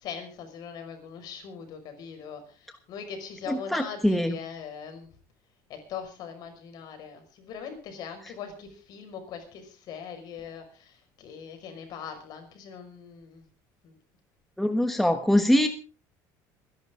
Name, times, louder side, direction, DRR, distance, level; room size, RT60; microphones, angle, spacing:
voice 1, 0.0-5.1 5.7-13.5 13.8-14.0, left 7 dB, 55° left, 6 dB, 5.6 m, -41 dB
voice 2, 3.5-4.3 14.6-15.7, left 1 dB, ahead, 7 dB, 1.3 m, -23 dB
26.0 x 11.5 x 3.8 m, 0.34 s
cardioid pair, 135°, 8 cm